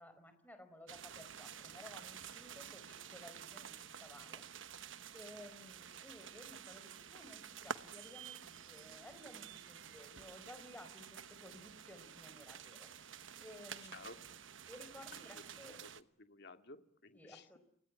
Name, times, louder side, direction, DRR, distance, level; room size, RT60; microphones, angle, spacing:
voice 1, 0.0-4.4 5.1-12.9 13.4-14.1 14.7-15.8 17.1-17.6, left 1 dB, 10° left, 9 dB, 4.7 m, -56 dB
sound 1, 0.9-16.0, right 7 dB, 65° right, 1.1 m, -51 dB
voice 2, 15.1-15.5 15.8-17.5, left 3 dB, 55° left, 7 dB, 2.3 m, -55 dB
29.5 x 19.5 x 9.7 m, 0.68 s
head